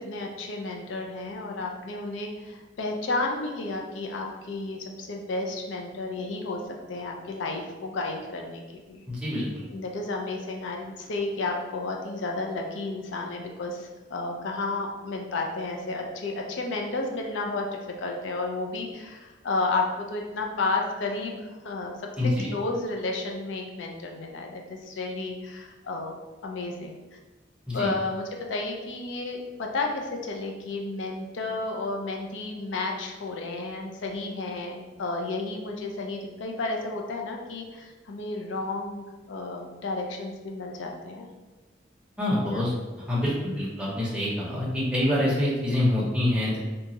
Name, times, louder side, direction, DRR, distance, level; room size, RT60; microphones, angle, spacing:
voice 1, 0.0-6.6 6.9-9.0 9.7-21.9 22.2-26.2 26.4-27.0 27.7-41.3 42.4-42.7, left 3 dB, 80° left, 1 dB, 0.4 m, -32 dB
voice 2, 9.1-9.6 22.2-22.5 27.7-27.9 42.2-42.7 43.1-46.6, left 1 dB, 5° right, -7 dB, 0.7 m, -26 dB
2.8 x 2.2 x 2.8 m, 1.2 s
head